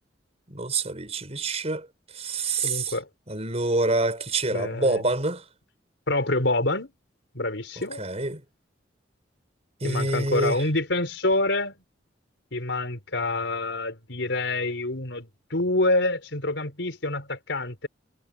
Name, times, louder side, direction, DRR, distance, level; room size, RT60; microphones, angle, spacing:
voice 1, 0.5-1.9 2.1-3.0 3.3-5.4 8.0-8.4 9.8-10.6, right 2 dB, 35° right, 5.7 m, -26 dB
voice 2, 2.6-3.1 4.5-5.1 6.1-6.9 7.3-8.0 9.8-11.8 12.5-17.9, left 2 dB, 80° left, 4.5 m, -27 dB
head